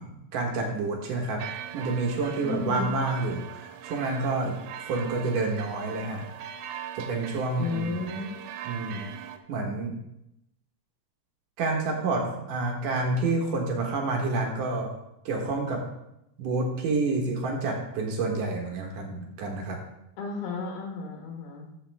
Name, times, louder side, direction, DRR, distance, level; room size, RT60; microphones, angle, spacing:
voice 1, 0.0-1.4 1.7-4.6 4.8-6.2 6.9-8.1 8.7-9.1 9.5-9.9 11.6-14.9 15.3-15.8 16.4-19.8, right 3 dB, 70° right, 1 dB, 2.0 m, -29 dB
sound 1, 1.4-9.4, right 10 dB, 85° right, 2.7 m, -41 dB
voice 2, 2.4-2.9 7.6-8.3 20.2-21.7, left 3 dB, 65° left, 1 dB, 2.9 m, -33 dB
14.0 x 6.3 x 3.4 m, 0.84 s
omnidirectional pair, 5.3 m